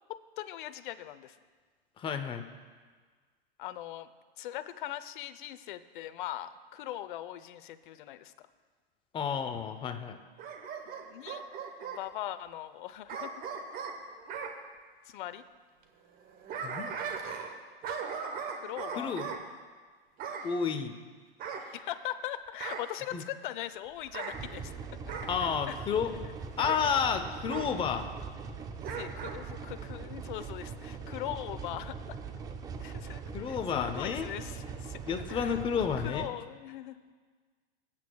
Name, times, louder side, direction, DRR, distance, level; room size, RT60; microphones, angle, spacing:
voice 1, 0.1-1.4 3.6-4.1 4.4-8.5 11.1-11.4 11.8-13.3 15.1-15.4 18.6-19.2 21.7-24.7 25.1-25.8 28.9-32.2 32.8-33.2 33.5-35.6 36.0-37.1, left 13 dB, 55° left, 12 dB, 0.7 m, -40 dB
voice 2, 2.0-2.5 9.1-10.2 16.6-16.9 19.0-19.3 20.4-21.0 23.1-23.2 25.3-26.1 26.6-28.1 33.3-34.3 35.0-36.3, left 7 dB, 15° left, 7 dB, 0.7 m, -31 dB
Bark / Growling, 10.4-12.0 13.1-14.5 16.2-17.6 17.8-19.4 20.2-20.5 21.4-22.2 22.6-22.9 24.0-24.4 25.1-25.4 26.6-26.8 27.5-27.7 28.8-29.4 29.8-29.9, right 6 dB, 30° right, 1.1 m, -38 dB
sound 1, 24.3-36.3, right 5 dB, 10° right, 0.4 m, -41 dB
21.5 x 8.8 x 2.3 m, 1.5 s
hypercardioid pair, 120°, 30 cm